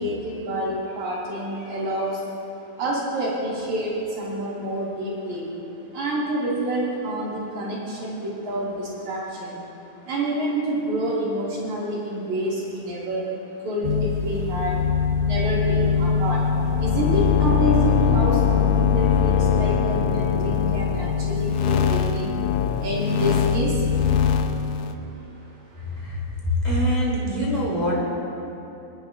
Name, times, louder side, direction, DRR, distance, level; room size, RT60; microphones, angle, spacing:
voice 1, 0.0-2.2 2.8-5.5 5.9-9.6 10.1-13.3 13.6-14.8 15.2-22.4 22.8-23.9 24.3-24.4 25.0-25.4 25.7-25.8, right 1 dB, 70° right, -7 dB, 3.4 m, -28 dB
sound 1, 13.8-24.9, left 7 dB, 85° left, 2.1 m, -22 dB
voice 2, 26.4-27.9, equal, 15° left, -6 dB, 2.7 m, -23 dB
27.5 x 10.0 x 2.4 m, 2.9 s
omnidirectional pair, 3.7 m